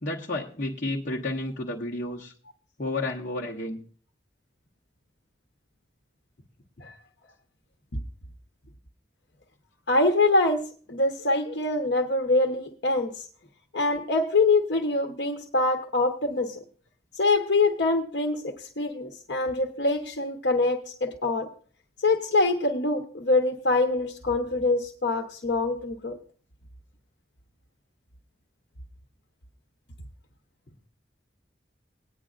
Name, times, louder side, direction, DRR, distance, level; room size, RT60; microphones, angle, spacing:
voice 1, 0.0-2.3 2.8-3.8, left 2 dB, 45° left, -4 dB, 1.1 m, -31 dB
voice 2, 9.9-13.2 13.7-16.6 17.2-21.5 22.0-26.2, left 2 dB, 80° left, 3 dB, 1.0 m, -24 dB
19.0 x 9.7 x 2.5 m, 0.42 s
head